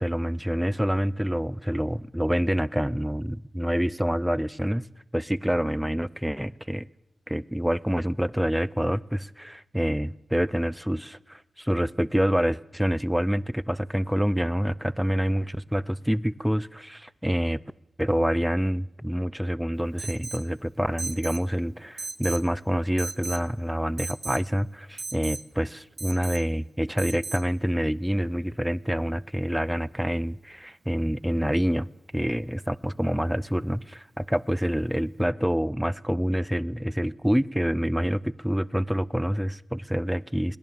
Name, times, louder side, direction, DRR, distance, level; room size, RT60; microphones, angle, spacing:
voice 1, 0.0-4.8 5.1-6.9 7.3-17.6 18.0-40.6, equal, 5° right, 0.5 m, -27 dB
Alarm, 20.0-20.5 21.0-21.4 22.0-22.5 23.0-23.5 24.0-24.5 25.0-25.4 26.0-26.4 27.0-27.4, right 3 dB, 50° right, 1.0 m, -36 dB
18.5 x 10.5 x 7.0 m
cardioid pair, 50°, 0 cm